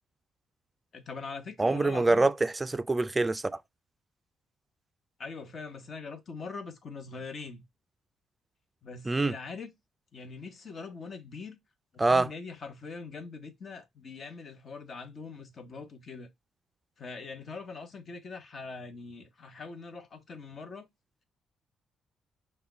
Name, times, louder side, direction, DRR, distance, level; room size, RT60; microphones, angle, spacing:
voice 1, 0.9-2.3 5.2-7.6 8.8-9.7 10.1-11.6 11.9-16.3 17.0-20.9, left 4 dB, 45° left, 0.9 m, -42 dB
voice 2, 1.6-3.6 9.1-9.3 12.0-12.3, right 2 dB, 20° right, 0.4 m, -25 dB
5.5 x 2.2 x 3.9 m
cardioid pair, 90°, 0 cm